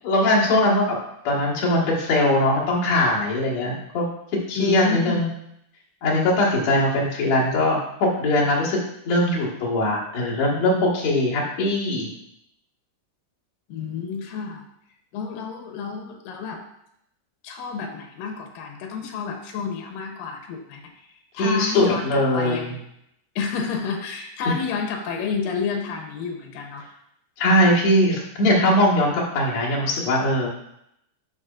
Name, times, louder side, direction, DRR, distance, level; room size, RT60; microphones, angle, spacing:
voice 1, 0.0-1.0 1.2-4.1 4.5-5.3 6.0-8.8 9.0-12.1 21.4-22.7 24.5-24.6 27.4-30.5, left 1 dB, 60° left, -5 dB, 2.7 m, -21 dB
voice 2, 4.6-5.2 13.7-14.7 15.1-16.6 17.4-21.1 21.3-22.8 23.4-26.9, left 5 dB, 85° left, 3 dB, 2.5 m, -30 dB
12.0 x 4.3 x 2.5 m, 0.77 s
omnidirectional pair, 3.9 m